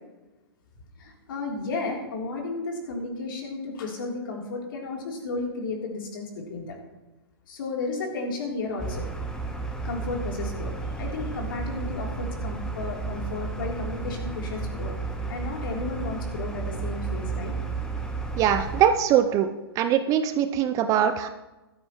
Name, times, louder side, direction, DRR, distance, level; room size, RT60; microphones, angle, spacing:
voice 1, 1.0-6.8 7.5-14.9 15.3-17.5, left 3 dB, 55° left, 0 dB, 3.4 m, -33 dB
sound 1, 8.8-18.8, right 4 dB, 5° left, 1.1 m, -32 dB
voice 2, 18.4-19.5 19.8-21.3, right 9 dB, 25° right, 9 dB, 0.6 m, -22 dB
14.0 x 13.0 x 3.1 m, 1.1 s
hypercardioid pair, 125°, 13 cm